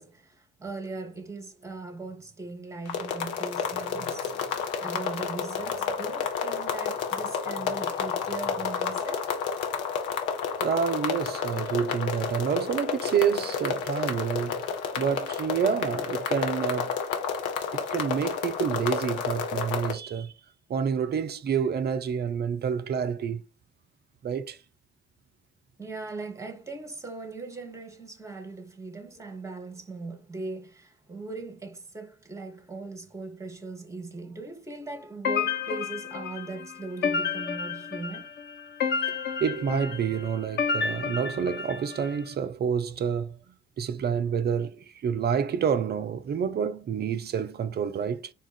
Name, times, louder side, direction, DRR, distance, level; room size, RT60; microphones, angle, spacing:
voice 1, 0.0-9.3 25.8-38.3, right 3 dB, 10° right, 0.9 m, -39 dB
sound 1, 2.9-19.9, left 6 dB, 60° left, 0.9 m, -30 dB
voice 2, 10.6-14.7 15.0-17.0 17.7-20.3 20.7-23.4 24.2-24.6 39.1-43.4 43.8-48.3, right 7 dB, 30° right, 0.4 m, -28 dB
sound 2, 35.2-42.2, left 6 dB, 30° left, 0.5 m, -31 dB
4.0 x 2.4 x 4.0 m
figure-of-eight pair, 45°, 35 cm